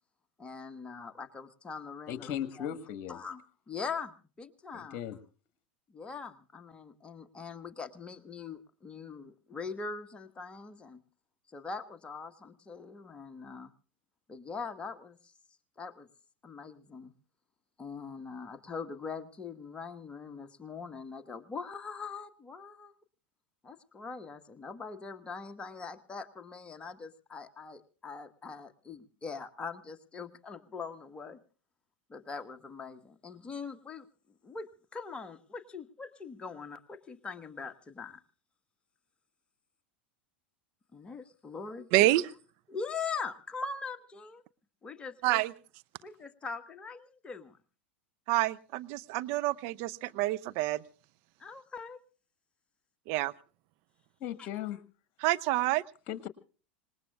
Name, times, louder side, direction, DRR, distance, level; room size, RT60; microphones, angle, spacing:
voice 1, 0.4-2.3 2.6-2.7 3.1-3.4 3.7-5.0 5.9-11.0 11.5-13.7 14.3-15.2 15.8-16.1 16.4-17.1 17.8-22.9 23.6-31.4 32.1-34.1 34.4-38.2 40.9-42.1 42.7-44.4 44.8-45.4 46.0-47.6 51.4-52.0 53.1-53.3 54.4-54.5, left 5 dB, 20° left, 7 dB, 1.3 m, -42 dB
voice 2, 2.1-3.2 4.7-5.2 54.2-54.8 56.1-56.3, left 10 dB, 45° left, 12 dB, 1.5 m, -37 dB
voice 3, 41.9-42.3 45.2-45.5 48.3-50.8 53.1-53.3 55.2-55.8, right 17 dB, 50° right, 14 dB, 0.7 m, -28 dB
26.0 x 20.0 x 2.3 m, 0.37 s
figure-of-eight pair, 85°, 6 cm